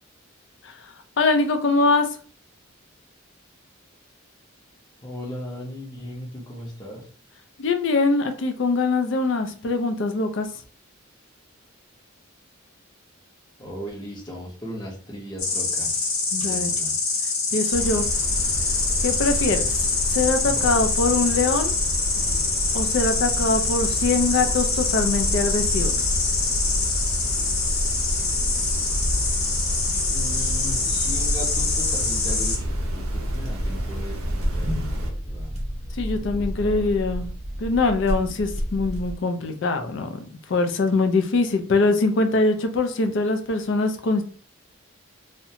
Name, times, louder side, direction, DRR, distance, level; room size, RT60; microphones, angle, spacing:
voice 1, 1.2-2.1 7.6-10.5 16.3-16.7 17.5-18.1 19.0-19.7 20.1-21.7 22.7-26.1 36.0-37.3 37.6-44.2, left 3 dB, 55° left, 7 dB, 0.4 m, -23 dB
voice 2, 5.0-7.1 13.6-16.9 20.4-20.8 22.1-22.4 28.1-28.4 30.1-35.6 36.0-37.0, equal, 20° left, -2 dB, 0.7 m, -37 dB
Insect, 15.4-32.6, left 4 dB, 80° left, 0.9 m, -25 dB
sound 1, 17.7-35.1, equal, 80° right, 0.6 m, -30 dB
sound 2, 25.2-39.2, equal, 30° right, 0.5 m, -31 dB
2.5 x 2.1 x 2.7 m, 0.41 s
head